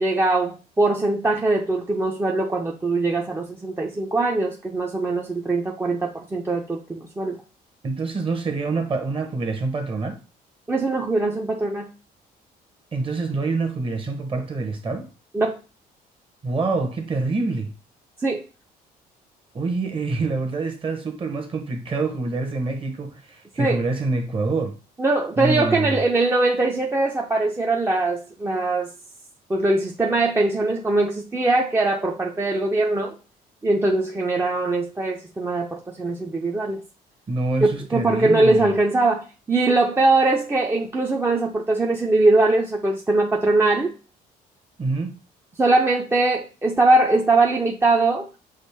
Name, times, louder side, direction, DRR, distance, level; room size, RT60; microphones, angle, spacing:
voice 1, 0.0-7.4 10.7-11.9 15.3-15.6 18.2-18.4 23.6-23.8 25.0-28.9 29.5-33.2 33.6-36.8 37.6-43.9 45.6-48.3, right 2 dB, 15° right, 0.5 m, -21 dB
voice 2, 7.8-10.2 12.9-15.1 16.4-17.7 19.5-24.8 25.4-26.0 37.3-38.7 44.8-45.2, right 3 dB, 30° right, 1.0 m, -26 dB
6.3 x 2.5 x 3.4 m
cardioid pair, 110°, 17 cm